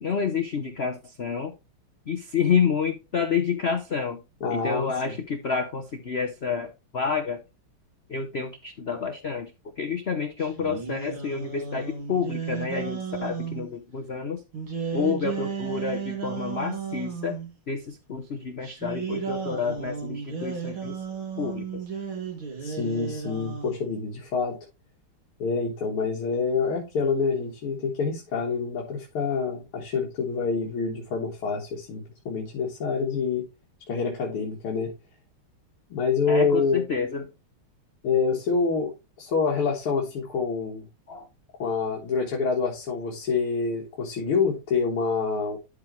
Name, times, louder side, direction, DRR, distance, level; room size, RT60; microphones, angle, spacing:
voice 1, 0.0-1.5 2.1-4.2 4.5-7.4 8.1-9.5 9.8-14.4 14.9-17.4 17.7-21.0 21.4-21.8 36.3-37.3 41.1-41.3, left 6 dB, 65° left, 0.6 m, -29 dB
voice 2, 4.4-5.2 22.6-24.6 25.4-33.5 33.9-34.9 35.9-36.8 38.0-38.9 39.2-40.9 41.6-45.6, left 5 dB, 90° left, 2.5 m, -27 dB
sound 1, 10.4-13.7 14.5-17.5 18.6-23.9, right 6 dB, 70° right, 3.4 m, -34 dB
12.0 x 4.9 x 3.1 m
omnidirectional pair, 2.3 m